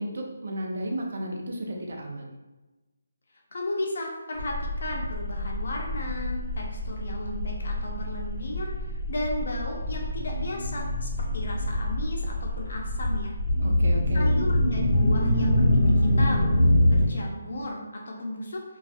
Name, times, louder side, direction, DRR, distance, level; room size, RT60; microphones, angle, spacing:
voice 1, 0.0-2.3 13.6-14.4, equal, 65° right, 1 dB, 0.5 m, -33 dB
voice 2, 3.5-13.4 14.1-16.5 16.8-18.6, left 1 dB, 65° left, -1 dB, 0.5 m, -34 dB
sound 1, 4.4-17.1, left 1 dB, 40° left, 1.1 m, -25 dB
2.4 x 2.3 x 2.3 m, 1.1 s
figure-of-eight pair, 155°, 0 cm